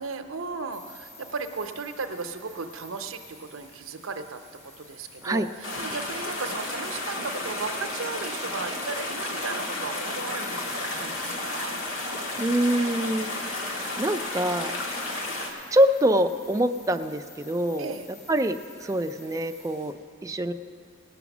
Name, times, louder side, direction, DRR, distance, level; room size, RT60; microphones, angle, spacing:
voice 1, 0.0-11.8 17.8-18.1, right 4 dB, 90° right, 7 dB, 0.7 m, -36 dB
sound 1, 0.7-19.9, left 3 dB, 30° left, 2.9 m, -51 dB
Water Stream Kremikovtsy, 5.6-15.5, left 2 dB, 85° left, 1.6 m, -32 dB
voice 2, 12.4-13.6 14.0-14.7 15.7-17.9 18.3-19.9 20.2-20.5, right 1 dB, 15° right, 7 dB, 0.3 m, -25 dB
18.0 x 6.0 x 7.1 m, 2.3 s
head